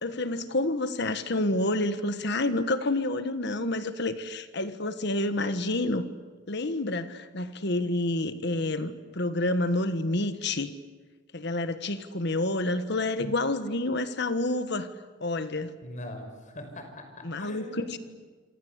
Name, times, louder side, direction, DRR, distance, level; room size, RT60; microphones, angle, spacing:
voice 1, 0.0-6.0 6.5-10.7 11.3-14.9 15.2-15.7 17.2-18.0, left 2 dB, 60° left, 11 dB, 1.5 m, -28 dB
voice 2, 15.8-18.0, left 1 dB, 40° left, 6 dB, 5.6 m, -42 dB
27.0 x 27.0 x 8.2 m, 1.4 s
head